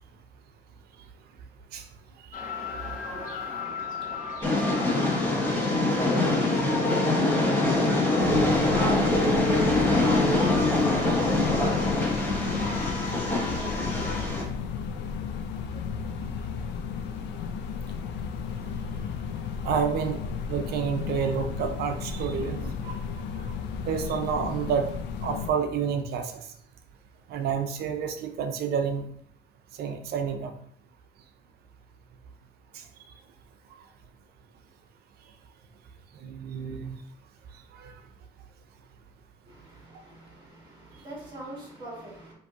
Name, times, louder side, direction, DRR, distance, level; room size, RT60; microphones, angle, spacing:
sound 1, 2.3-14.3, left 4 dB, 50° left, 0.8 m, -36 dB
voice 1, 3.1-14.5 39.5-42.3, right 2 dB, 25° right, 1.6 m, -38 dB
Train, 4.4-14.4, left 2 dB, 10° left, 0.9 m, -24 dB
sound 2, 8.2-25.5, left 6 dB, 75° left, 0.4 m, -34 dB
voice 2, 19.6-23.5 23.8-24.9 25.2-26.5 27.3-29.1 29.8-30.5 32.7-32.8 36.2-37.0 37.7-37.9, right 6 dB, 60° right, 0.6 m, -30 dB
5.1 x 2.6 x 2.8 m
cardioid pair, 160°, 18 cm